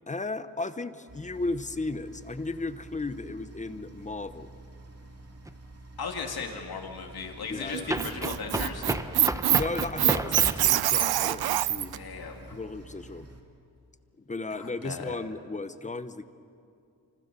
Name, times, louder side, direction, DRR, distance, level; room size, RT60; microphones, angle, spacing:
voice 1, 0.1-4.5 7.5-7.9 9.5-11.9 12.5-13.3 14.2-16.2, left 3 dB, 20° left, 11 dB, 1.0 m, -35 dB
sound 1, 1.1-13.4, right 2 dB, 40° right, 3.0 m, -49 dB
sound 2, 5.4-5.5 7.9-10.7, right 1 dB, 10° right, 1.0 m, -32 dB
voice 2, 6.0-8.9 12.0-12.6 14.5-15.1, left 5 dB, 75° left, 3 dB, 2.7 m, -37 dB
Squeak, 7.7-12.0, right 12 dB, 75° right, 0.6 m, -25 dB
29.5 x 26.0 x 6.9 m, 2.5 s
wide cardioid pair, 135°, 37 cm